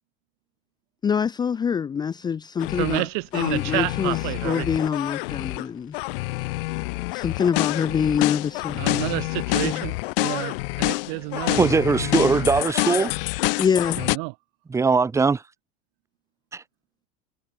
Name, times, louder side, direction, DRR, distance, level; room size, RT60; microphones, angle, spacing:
voice 1, 1.0-3.1 3.3-5.9 7.1-9.1 9.6-9.9 13.6-14.0, left 7 dB, 15° left, 0.7 m, -25 dB
sound 1, 2.6-3.1 3.3-5.7 5.9-14.2, left 25 dB, 70° left, 3.4 m, -27 dB
voice 2, 2.8-4.7 8.8-11.6 14.0-14.3, right 40 dB or more, 55° right, 1.2 m, -29 dB
voice 3, 11.5-13.1 14.7-15.4 16.5-16.6, right 4 dB, 10° right, 1.2 m, -20 dB
supercardioid pair, 165°, 29 cm